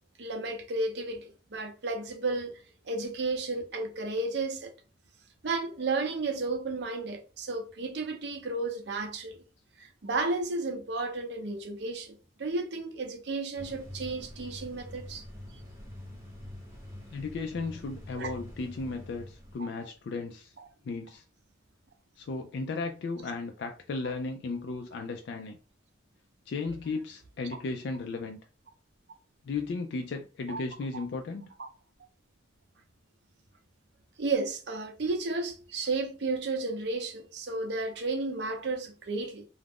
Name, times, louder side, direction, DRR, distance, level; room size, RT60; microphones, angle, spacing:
voice 1, 0.2-4.7 5.4-9.4 9.8-15.2 18.2-18.3 19.6-19.7 20.6-20.7 30.5-30.6 30.9-31.0 31.6-31.7 34.2-39.4, right 3 dB, 65° right, 0.5 m, -33 dB
sound 1, 13.6-19.6, left 1 dB, 15° right, 0.8 m, -45 dB
voice 2, 17.1-20.5 20.8-21.2 22.2-25.6 26.5-28.4 29.4-31.5, left 3 dB, 65° left, 0.3 m, -35 dB
2.4 x 2.0 x 3.4 m
head